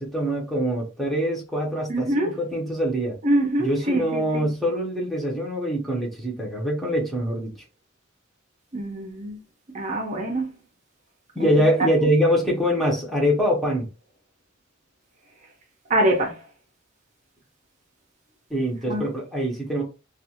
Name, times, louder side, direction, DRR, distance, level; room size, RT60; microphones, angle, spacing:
voice 1, 0.0-3.2 3.6-7.6 11.3-13.9 18.5-19.8, equal, ahead, 0.8 m, -24 dB
voice 2, 1.9-2.4 3.2-4.5 8.7-9.4 9.7-10.6 11.4-11.5 15.9-16.4 18.9-19.1, right 1 dB, 35° right, 0.6 m, -24 dB
2.4 x 2.4 x 2.8 m
head